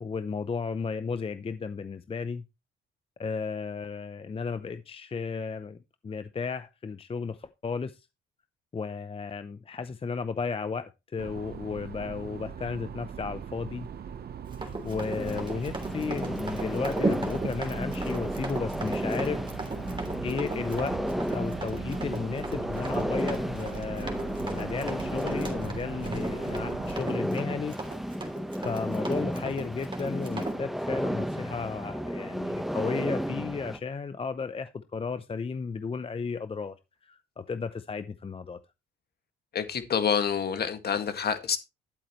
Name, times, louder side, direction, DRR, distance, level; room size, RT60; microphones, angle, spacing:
voice 1, 0.0-2.4 3.2-5.8 6.0-8.1 8.7-13.9 14.6-19.4 20.2-21.0 21.3-27.8 28.6-36.8 37.0-38.6, left 5 dB, 30° left, 0.7 m, -34 dB
sound 1, 11.2-26.9, right 7 dB, 55° right, 0.8 m, -41 dB
Run, 14.5-30.6, right 2 dB, 25° right, 3.1 m, -37 dB
sound 2, 14.9-33.8, equal, ahead, 1.1 m, -33 dB
voice 2, 39.5-41.6, left 7 dB, 55° left, 1.9 m, -27 dB
11.0 x 8.6 x 3.1 m
cardioid pair, 90°, 20 cm